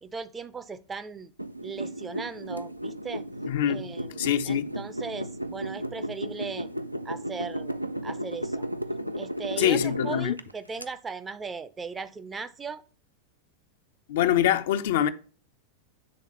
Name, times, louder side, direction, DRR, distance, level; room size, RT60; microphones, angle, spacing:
voice 1, 0.0-1.3 1.6-3.3 3.7-6.7 7.0-7.8 8.0-8.7 9.1-12.8, right 5 dB, 15° right, 0.4 m, -38 dB
sound 1, 1.4-10.9, right 1 dB, 90° right, 0.3 m, -34 dB
voice 2, 3.5-3.8 4.2-4.7 9.6-10.3 14.1-15.1, left 11 dB, 55° left, 0.4 m, -24 dB
7.7 x 3.4 x 4.1 m
figure-of-eight pair, 90°, 0 cm